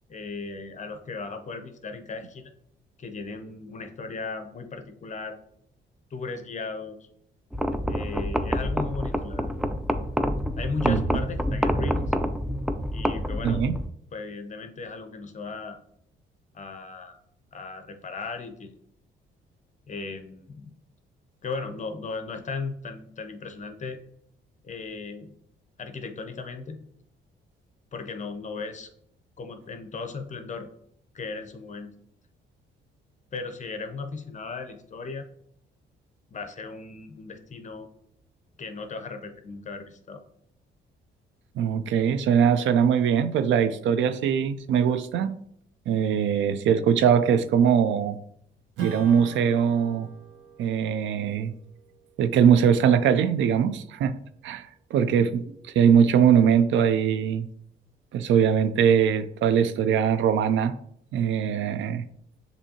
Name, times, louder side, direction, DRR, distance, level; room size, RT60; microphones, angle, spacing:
voice 1, 0.1-2.5 3.0-5.4 6.1-7.0 7.9-9.6 10.6-12.1 12.9-13.7 14.1-15.8 16.5-17.2 17.5-18.7 19.9-20.7 21.4-24.0 24.6-25.3 25.8-26.8 27.9-28.9 29.4-30.7 31.1-31.9 33.3-35.3 36.3-37.9 38.6-40.2, left 4 dB, 40° left, 7 dB, 0.6 m, -36 dB
sound 1, 7.5-13.9, equal, ahead, 0.3 m, -27 dB
voice 2, 13.4-13.8 41.6-45.3 45.9-48.2 48.8-50.1 50.6-51.5 52.2-54.1 54.4-55.4 55.7-57.5 58.1-60.7 61.1-62.0, right 8 dB, 70° right, 12 dB, 0.4 m, -21 dB
Strum, 48.8-53.7, right 6 dB, 90° right, 1.0 m, -41 dB
7.0 x 2.7 x 2.8 m, 0.70 s
cardioid pair, 90°, 20 cm